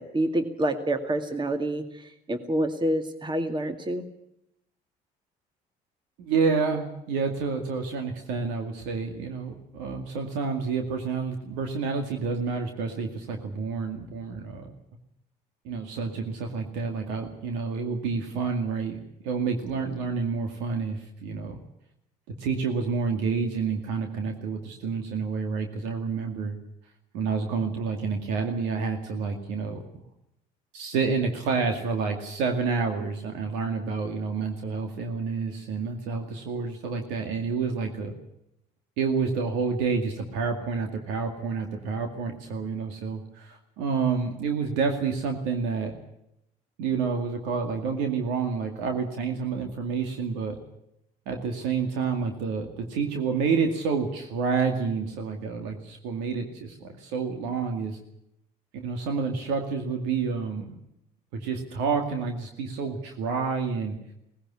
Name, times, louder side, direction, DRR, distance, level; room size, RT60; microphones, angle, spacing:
voice 1, 0.0-4.0, right 1 dB, 25° right, 7 dB, 2.2 m, -28 dB
voice 2, 6.2-14.7 15.6-19.0 19.2-21.6 22.3-26.6 27.1-29.8 30.7-38.1 39.0-45.9 46.8-50.6 51.3-58.0 58.7-60.7 61.3-64.0, right 5 dB, 85° right, 4 dB, 2.2 m, -29 dB
19.0 x 15.5 x 9.9 m, 0.81 s
supercardioid pair, 80°, 18 cm